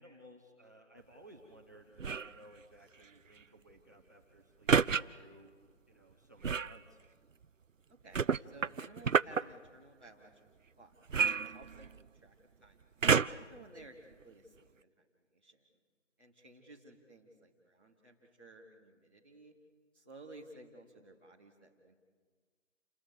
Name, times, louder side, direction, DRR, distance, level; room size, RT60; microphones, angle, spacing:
voice 1, 0.0-5.5 5.9-7.0, right 1 dB, 15° right, 1 dB, 1.1 m, -58 dB
sound 1, 2.0-2.4 4.7-5.0 6.4-6.8 8.1-9.4 11.1-12.1 13.0-13.5 14.2-14.3, right 6 dB, 80° right, 0.7 m, -29 dB
voice 2, 7.9-10.4 10.8-10.9 11.4-12.3 12.6-12.9 13.3-15.6 16.2-19.5 19.9-22.0, right 2 dB, 10° left, -9 dB, 1.2 m, -56 dB
29.0 x 21.0 x 6.9 m, 1.5 s
figure-of-eight pair, 170°, 38 cm